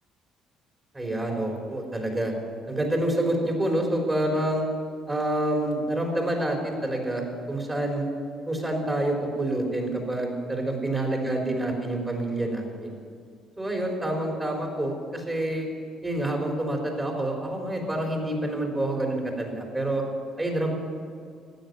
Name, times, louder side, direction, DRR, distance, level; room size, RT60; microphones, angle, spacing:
voice 1, 0.9-2.3 2.7-4.7 5.1-8.0 8.5-13.0 13.6-15.7 16.0-20.0 20.4-20.7, right 1 dB, 15° right, 0 dB, 3.8 m, -27 dB
14.5 x 9.3 x 9.3 m, 2.2 s
cardioid pair, 90°, 0 cm